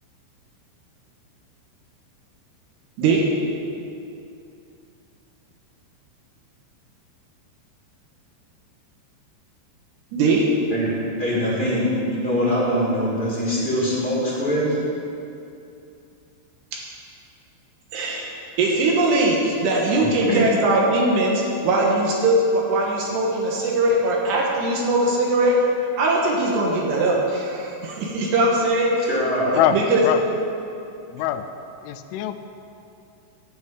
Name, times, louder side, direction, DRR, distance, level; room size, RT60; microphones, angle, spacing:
voice 1, 10.1-10.5 17.9-18.3 18.6-25.6 26.0-29.1 29.7-30.0, right 2 dB, 70° right, -2 dB, 3.0 m, -20 dB
voice 2, 10.7-14.8 20.0-20.4 29.1-29.6, equal, 15° left, -7 dB, 1.7 m, -23 dB
voice 3, 31.1-31.4 31.8-32.3, left 12 dB, 85° left, 9 dB, 3.1 m, -22 dB
11.0 x 6.2 x 8.9 m, 2.6 s
omnidirectional pair, 5.6 m